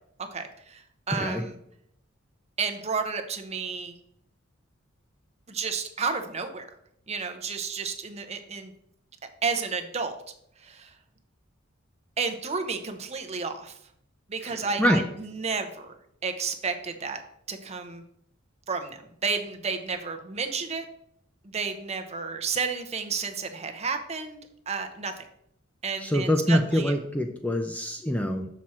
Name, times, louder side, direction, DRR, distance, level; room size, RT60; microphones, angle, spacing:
voice 1, 0.3-1.6 2.6-3.9 5.5-6.7 7.1-8.7 9.4-10.1 10.6-11.0 12.2-13.8 14.3-15.9 16.2-17.2 17.5-18.0 18.7-20.9 21.4-24.4 24.7-25.3 25.8-26.9, right 5 dB, 30° right, 7 dB, 0.7 m, -31 dB
voice 2, 14.4-15.1 26.0-28.5, equal, 5° left, 5 dB, 0.4 m, -25 dB
6.2 x 5.9 x 4.2 m, 0.73 s
head